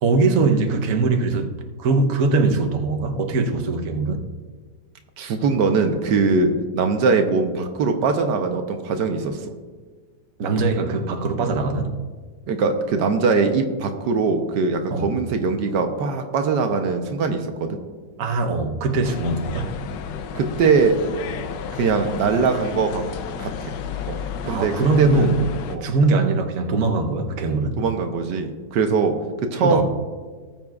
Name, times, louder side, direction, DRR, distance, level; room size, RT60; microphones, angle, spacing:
voice 1, 0.0-1.5 1.8-4.2 10.4-11.9 14.9-15.1 18.2-19.7 24.4-25.5 25.8-27.8 29.6-29.8, right 3 dB, 55° right, 3 dB, 1.2 m, -21 dB
voice 2, 5.2-9.4 12.5-17.8 20.3-20.9 21.7-23.0 23.4-23.7 24.1-24.2 24.5-25.3 25.7-25.9 27.8-29.1 29.4-29.8, right 4 dB, 75° right, 5 dB, 1.4 m, -21 dB
sound 1, 19.0-25.8, left 7 dB, 85° left, 1.3 m, -32 dB
19.0 x 7.3 x 2.4 m, 1.4 s
omnidirectional pair, 1.9 m